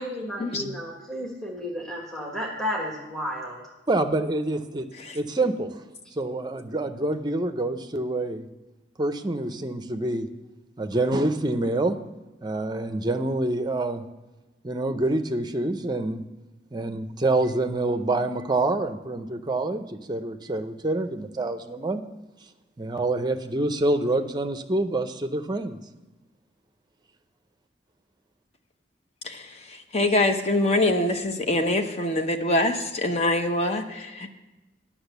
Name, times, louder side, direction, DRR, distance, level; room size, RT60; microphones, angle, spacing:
voice 1, 0.0-3.6, equal, ahead, -1 dB, 1.4 m, -32 dB
voice 2, 3.9-4.9 5.1-5.8 6.2-8.4 9.0-10.3 10.8-12.0 12.4-14.0 14.6-16.2 16.7-22.0 22.8-25.8, right 2 dB, 25° right, 8 dB, 0.6 m, -26 dB
voice 3, 29.9-34.3, left 1 dB, 35° left, 6 dB, 0.8 m, -24 dB
10.0 x 6.0 x 8.0 m, 1.1 s
head